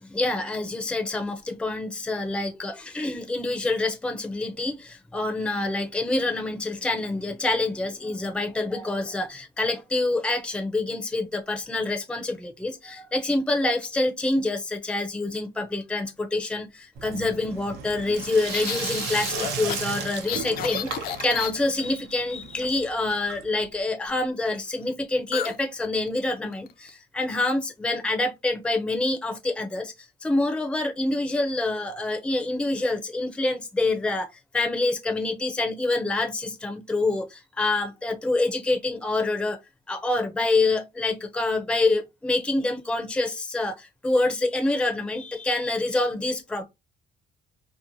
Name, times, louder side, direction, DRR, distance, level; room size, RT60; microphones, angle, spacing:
voice 1, 0.1-16.6 17.0-20.9 21.2-29.9 30.2-34.3 34.5-37.3 37.6-39.6 39.9-43.7 44.0-46.6, left 2 dB, 5° left, 0.5 m, -26 dB
Sink (filling or washing), 17.0-23.7, right 7 dB, 80° right, 0.6 m, -35 dB
sound 1, 18.5-21.9 25.3-25.6 25.8-26.1 26.5-26.9, left 10 dB, 65° left, 0.4 m, -32 dB
2.9 x 2.1 x 2.5 m
cardioid pair, 110°, 17 cm